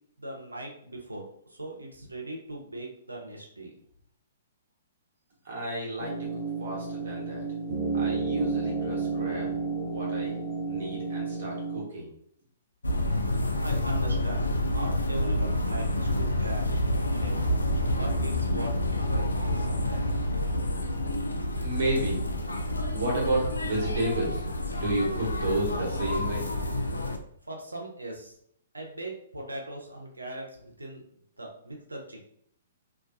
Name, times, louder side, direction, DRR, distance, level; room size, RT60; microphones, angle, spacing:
voice 1, 0.2-1.2 1.5-3.7 13.6-17.4 17.9-18.7 19.1-20.1 27.5-28.4 28.7-31.0 31.4-32.2, right 1 dB, 85° right, 0 dB, 0.6 m, -40 dB
voice 2, 5.4-6.2 6.6-7.4 7.9-9.5 9.8-10.3 10.7-12.1 21.6-22.2 22.9-26.5, right 1 dB, 60° right, -3 dB, 1.1 m, -31 dB
sound 1, 6.0-11.8, right 4 dB, 15° left, 1.3 m, -31 dB
sound 2, 12.8-27.2, left 1 dB, 80° left, 0.3 m, -28 dB
2.4 x 2.2 x 2.5 m, 0.67 s
figure-of-eight pair, 120°, 0 cm